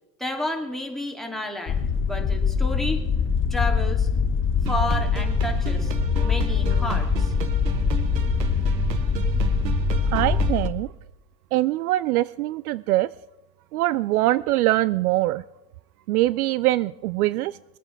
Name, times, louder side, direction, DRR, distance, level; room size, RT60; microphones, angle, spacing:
voice 1, 0.2-3.0 3.5-4.1 4.7-7.3, left 1 dB, ahead, 1 dB, 2.6 m, -31 dB
sound 1, 1.7-10.7, left 6 dB, 25° left, 0.8 m, -23 dB
sound 2, 4.6-10.7, right 7 dB, 85° right, 1.2 m, -31 dB
voice 2, 10.1-10.9 11.5-13.1 13.7-15.4 16.1-17.6, right 16 dB, 65° right, 19 dB, 0.5 m, -23 dB
22.5 x 8.8 x 4.5 m, 0.99 s
hypercardioid pair, 100°, 49 cm